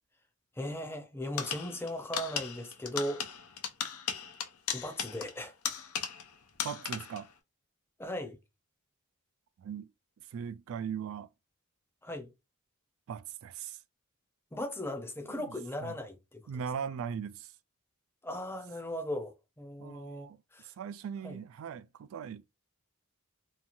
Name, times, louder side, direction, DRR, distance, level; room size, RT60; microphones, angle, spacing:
voice 1, 0.6-3.2 4.7-5.5 8.0-8.4 12.0-12.3 14.5-16.4 18.2-20.7 21.2-21.4, left 1 dB, 10° left, 0.6 m, -38 dB
sound 1, 1.4-6.3 6.6-7.3, left 7 dB, 90° left, 0.6 m, -37 dB
voice 2, 6.6-7.3 9.6-9.9 10.2-11.3 13.1-13.8 15.3-15.6 15.8-15.9 16.5-17.5 19.8-20.4 20.6-22.5, right 7 dB, 65° right, 0.3 m, -39 dB
2.9 x 2.3 x 2.5 m
head